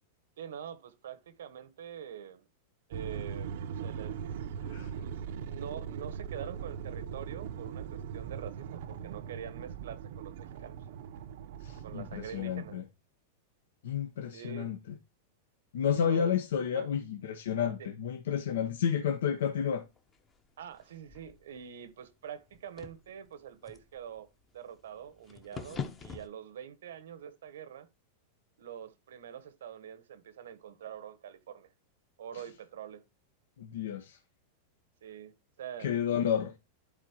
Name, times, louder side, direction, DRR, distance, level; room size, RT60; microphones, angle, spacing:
voice 1, 0.4-2.4 2.9-3.5 3.8-4.2 5.0-5.1 5.5-10.8 11.8-12.8 14.3-14.7 15.9-16.3 16.7-16.9 17.6-17.9 20.6-27.9 28.6-31.7 32.2-33.0 35.0-35.9, right 9 dB, 90° right, 1.1 m, -45 dB
sound 1, 2.9-12.8, right 7 dB, 60° right, 0.6 m, -40 dB
voice 2, 11.6-12.8 13.8-15.0 15.7-19.8 33.6-34.2 35.8-36.5, left 8 dB, 85° left, 1.0 m, -31 dB
sound 2, 19.2-26.3, left 6 dB, 15° left, 0.7 m, -46 dB
11.5 x 4.3 x 2.9 m
supercardioid pair, 165°, 0 cm